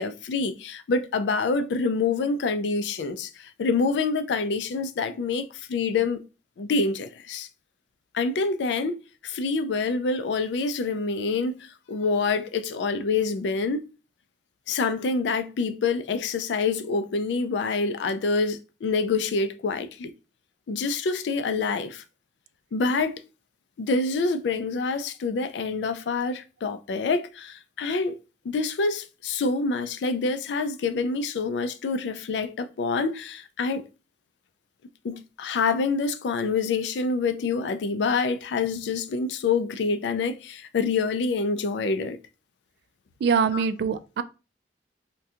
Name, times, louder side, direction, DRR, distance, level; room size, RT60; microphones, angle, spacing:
voice 1, 0.0-6.2 6.6-7.5 8.1-13.8 14.7-20.1 20.7-22.0 22.7-23.2 23.8-28.2 28.4-33.9 35.0-42.2 43.5-43.6, left 4 dB, 70° left, 0.4 m, -26 dB
voice 2, 43.2-44.2, right 6 dB, 65° right, 0.3 m, -23 dB
2.7 x 2.2 x 3.5 m
head